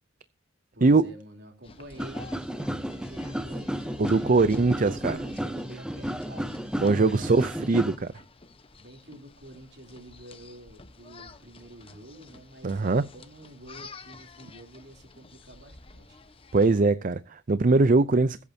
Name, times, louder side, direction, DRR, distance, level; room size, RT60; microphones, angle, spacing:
voice 1, 0.7-7.4 7.8-7.9 8.7-16.2, right 1 dB, 60° right, 3.6 m, -48 dB
sound 1, 1.6-16.8, left 3 dB, 30° left, 1.1 m, -50 dB
sound 2, 2.0-8.0, equal, 5° right, 0.7 m, -33 dB
voice 2, 4.0-5.2 6.8-8.1 12.6-13.0 16.5-18.4, right 3 dB, 45° right, 0.5 m, -21 dB
22.0 x 8.4 x 2.8 m
head